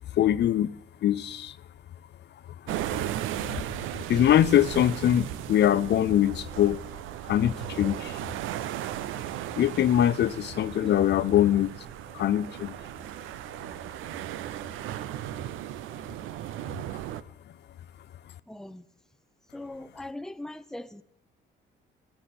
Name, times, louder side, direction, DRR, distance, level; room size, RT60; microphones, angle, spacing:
voice 1, 0.2-0.7 1.0-1.5 4.1-6.8 7.3-8.1 9.6-11.7 12.1-12.7, left 11 dB, 60° left, 0.5 m, -23 dB
sound 1, 2.7-17.2, right 12 dB, 90° right, 0.6 m, -36 dB
voice 2, 18.5-18.8 19.5-21.0, left 1 dB, ahead, 0.6 m, -40 dB
15.0 x 14.5 x 4.3 m
cardioid pair, 90°, 20 cm